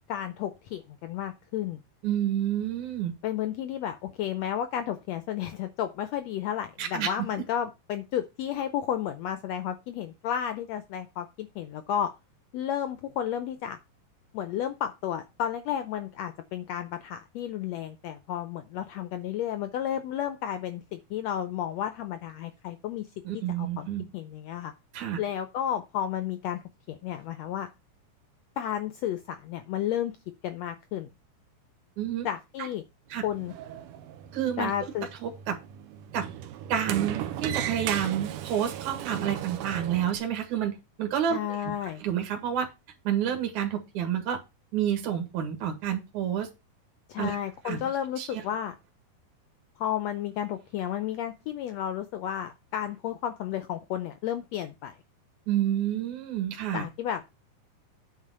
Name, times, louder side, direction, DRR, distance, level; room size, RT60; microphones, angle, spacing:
voice 1, 0.1-1.8 3.2-12.1 12.5-13.8 14.3-23.1 23.3-23.9 24.1-24.7 25.2-26.6 26.9-27.7 28.6-30.1 30.4-31.1 32.2-32.8 33.2-33.5 34.6-35.1 41.3-42.0 47.1-48.7 49.8-54.9 56.7-57.3, left 10 dB, 80° left, 10 dB, 1.5 m, -32 dB
voice 2, 2.0-3.1 6.8-7.4 23.2-24.1 24.9-25.2 32.0-32.3 32.6-32.7 33.1-33.2 34.3-34.7 35.2-35.6 36.1-36.3 36.7-42.7 43.0-44.4 44.7-46.5 47.2-47.4 47.6-47.8 48.2-48.4 55.5-56.8, right 10 dB, 65° right, 4 dB, 3.2 m, -29 dB
Sliding door, 33.1-40.2, right 11 dB, 85° right, 2.4 m, -36 dB
8.7 x 4.0 x 6.7 m, 0.26 s
omnidirectional pair, 3.8 m